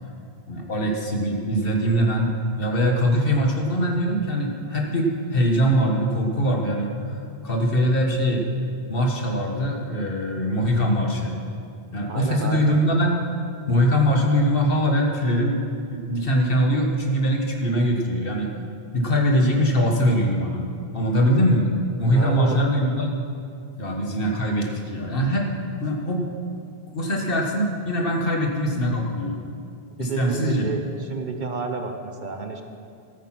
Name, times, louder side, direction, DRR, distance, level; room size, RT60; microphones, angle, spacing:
voice 1, 0.5-8.5 8.9-11.3 11.9-13.2 13.7-15.6 15.9-18.5 18.9-20.6 20.9-21.7 22.0-23.1 23.8-25.5 25.8-26.3 26.9-29.4 30.0-30.7, equal, 55° left, 1 dB, 1.7 m, -22 dB
voice 2, 12.1-12.8 22.1-22.6 29.9-32.6, right 4 dB, 50° right, 5 dB, 0.9 m, -31 dB
14.5 x 8.9 x 5.9 m, 2.4 s
omnidirectional pair, 1.1 m